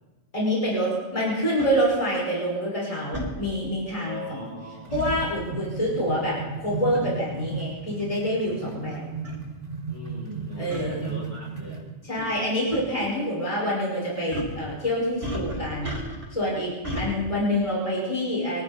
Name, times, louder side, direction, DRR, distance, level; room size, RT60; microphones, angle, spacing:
voice 1, 0.3-4.5 4.9-9.0 10.6-11.1 12.0-15.9 16.3-18.6, equal, 30° left, -4 dB, 5.5 m, -27 dB
sound 1, 1.6-1.7 3.1-3.3 4.9-5.2 6.9-7.2 8.0-8.1 8.9-9.0 9.2-9.4 10.7-10.8 12.2-12.4 12.7-12.8 14.3-14.6 15.2-16.3 16.8-17.1, equal, 60° right, 5.0 m, -33 dB
voice 2, 4.0-4.9 9.9-11.9, left 1 dB, 75° left, -5 dB, 7.4 m, -39 dB
stone on stone ST, 4.4-11.9, right 4 dB, 85° right, 2.6 m, -35 dB
24.5 x 14.0 x 4.2 m, 1.2 s
omnidirectional pair, 1.2 m